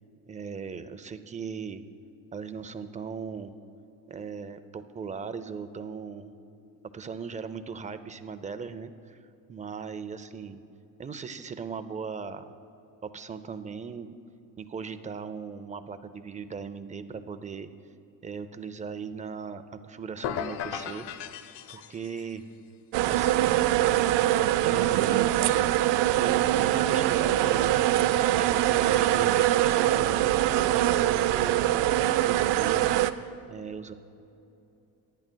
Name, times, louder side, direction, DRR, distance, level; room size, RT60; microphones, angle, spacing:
voice 1, 0.3-1.8 2.3-3.5 4.1-6.3 6.9-9.2 9.5-10.6 11.0-12.5 13.0-14.1 14.6-17.7 18.2-21.3 21.7-22.4 23.1-23.5 24.5-33.9, right 5 dB, 20° right, 11 dB, 0.4 m, -39 dB
sound 1, 20.2-22.3, left 9 dB, 70° left, 0.7 m, -36 dB
sound 2, 22.9-33.1, right 13 dB, 80° right, 0.6 m, -23 dB
24.5 x 10.5 x 2.2 m, 2.7 s
cardioid pair, 135°, 42 cm